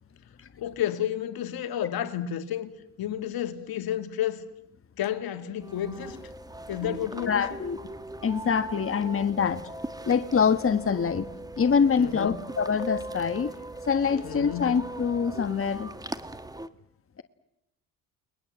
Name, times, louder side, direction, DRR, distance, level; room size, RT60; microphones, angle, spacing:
voice 1, 0.6-2.7 3.0-4.5 5.0-6.2 6.7-7.4 12.0-12.4 14.2-14.8, left 10 dB, 65° left, 2.4 m, -31 dB
sound 1, 5.6-16.7, right 1 dB, 10° right, 1.5 m, -40 dB
voice 2, 7.3-7.8 8.2-9.6 10.0-11.3 11.6-13.5 13.9-15.9, left 6 dB, 35° left, 1.6 m, -25 dB
29.5 x 21.5 x 7.5 m
supercardioid pair, 70°, 38 cm